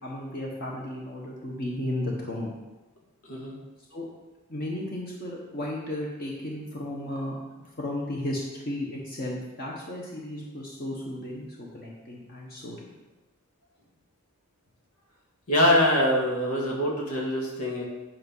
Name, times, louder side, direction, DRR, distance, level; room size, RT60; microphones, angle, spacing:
voice 1, 0.0-2.5 3.9-4.1 4.5-7.3 7.8-12.9, left 1 dB, 40° left, -3 dB, 1.2 m, -34 dB
voice 2, 15.5-17.8, left 1 dB, 85° left, -2 dB, 2.0 m, -24 dB
8.7 x 5.4 x 5.5 m, 1.2 s
head